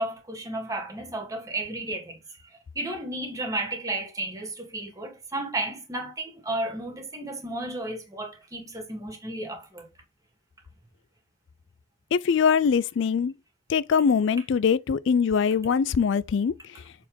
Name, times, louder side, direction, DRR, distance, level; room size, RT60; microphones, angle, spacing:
voice 1, 0.0-2.2 2.7-9.9, right 1 dB, 15° right, 2.3 m, -33 dB
voice 2, 12.1-13.3 13.7-16.5, left 6 dB, 65° left, 0.3 m, -22 dB
7.3 x 4.3 x 3.7 m
head